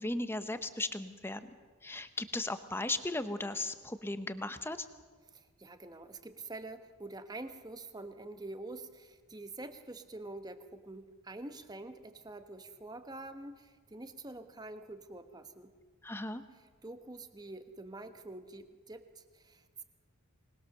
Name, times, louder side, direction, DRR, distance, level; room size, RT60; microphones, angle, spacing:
voice 1, 0.0-1.5 1.8-4.9 16.0-16.4, left 2 dB, 10° left, 10 dB, 0.9 m, -36 dB
voice 2, 5.3-15.7 16.8-19.8, right 2 dB, 15° right, 9 dB, 1.1 m, -46 dB
25.0 x 20.5 x 6.6 m, 1.5 s
head